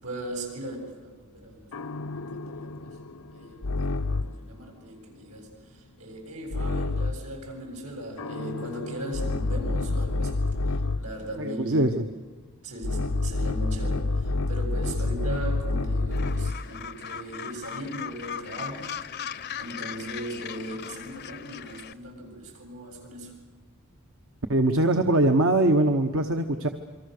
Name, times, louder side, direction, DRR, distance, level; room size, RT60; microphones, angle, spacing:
voice 1, 0.0-3.0 3.3-11.9 12.6-18.9 19.1-19.3 19.6-23.3, right 1 dB, 85° right, 1 dB, 7.7 m, -38 dB
sound 1, 1.7-4.5 6.5-7.3 8.2-11.2 12.8-16.7, left 2 dB, 85° left, 0.7 m, -28 dB
voice 2, 11.4-12.0 24.5-26.7, right 1 dB, 65° right, 6 dB, 1.2 m, -22 dB
Gull seagull, 16.1-21.9, left 8 dB, 50° left, 0.7 m, -38 dB
27.5 x 24.5 x 6.7 m, 1.3 s
head